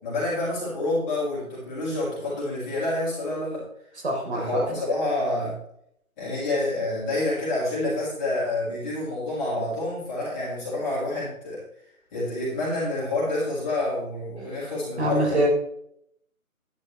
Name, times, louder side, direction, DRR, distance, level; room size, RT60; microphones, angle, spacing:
voice 1, 0.0-3.6 4.3-5.5 6.2-11.6 12.1-15.4, left 2 dB, 15° left, -7 dB, 5.1 m, -28 dB
voice 2, 4.0-4.6 15.0-15.5, right 1 dB, 50° right, 0 dB, 3.8 m, -24 dB
11.5 x 11.0 x 3.2 m, 0.70 s
figure-of-eight pair, 160°, 44 cm